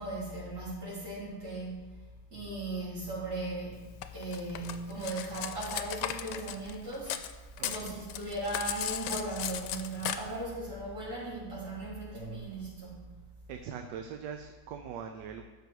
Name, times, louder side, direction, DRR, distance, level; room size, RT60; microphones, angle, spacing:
voice 1, 0.0-1.8 2.3-3.8 4.1-7.2 7.6-13.1, right 2 dB, 65° right, -9 dB, 4.6 m, -37 dB
Cutlery silverware, 4.0-7.3 7.6-10.2, left 11 dB, 80° left, 1.2 m, -36 dB
voice 2, 7.6-8.1 13.5-15.4, right 7 dB, 80° right, 6 dB, 1.3 m, -42 dB
13.5 x 5.4 x 4.6 m, 1.2 s
omnidirectional pair, 1.9 m